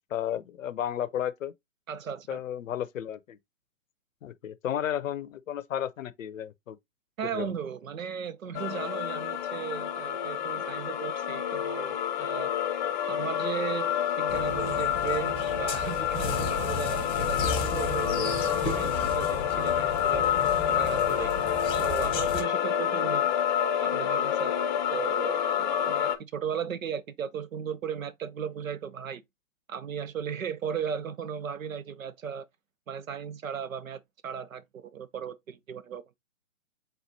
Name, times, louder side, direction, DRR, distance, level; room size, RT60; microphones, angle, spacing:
voice 1, 0.1-1.5 2.3-3.4 4.2-6.8 7.3-7.5, left 10 dB, 75° left, 0.6 m, -33 dB
voice 2, 1.9-2.4 7.2-12.5 13.1-13.9 14.2-20.2 20.7-21.3 21.8-23.3 23.8-24.5 24.9-29.2 29.7-32.5 32.9-36.0, right 7 dB, 85° right, 0.7 m, -36 dB
sound 1, 8.5-26.2, left 9 dB, 35° left, 0.6 m, -28 dB
sound 2, 14.3-22.4, left 3 dB, 15° left, 0.9 m, -35 dB
4.2 x 3.8 x 2.7 m
hypercardioid pair, 130°, 40 cm